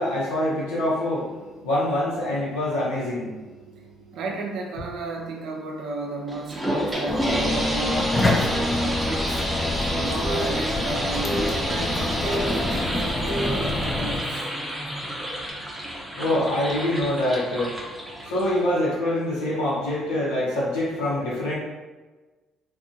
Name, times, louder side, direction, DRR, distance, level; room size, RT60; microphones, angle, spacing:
voice 1, 0.0-3.5 15.5-15.6 16.1-21.6, left 1 dB, 85° left, -7 dB, 1.0 m, -25 dB
voice 2, 4.1-9.4 9.9-14.5, right 2 dB, 70° right, 1 dB, 0.5 m, -33 dB
sound 1, 6.3-18.8, equal, 15° right, 0.8 m, -30 dB
sound 2, 7.1-14.2, left 1 dB, 30° left, 0.6 m, -26 dB
2.6 x 2.5 x 2.6 m, 1.2 s
hypercardioid pair, 50°, 0 cm